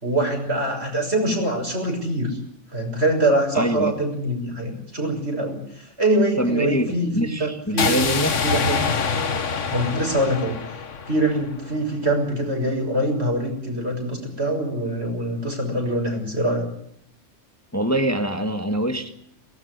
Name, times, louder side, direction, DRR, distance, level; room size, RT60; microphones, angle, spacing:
voice 1, 0.0-2.4 2.7-8.1 8.4-8.8 9.7-10.6 11.1-16.7, right 1 dB, 60° right, 3 dB, 6.9 m, -24 dB
voice 2, 3.5-3.9 6.4-8.3 17.7-19.1, equal, 15° left, 7 dB, 1.7 m, -24 dB
sound 1, 7.8-11.8, left 5 dB, 80° left, 1.7 m, -25 dB
22.5 x 19.0 x 9.7 m, 0.69 s
omnidirectional pair, 1.2 m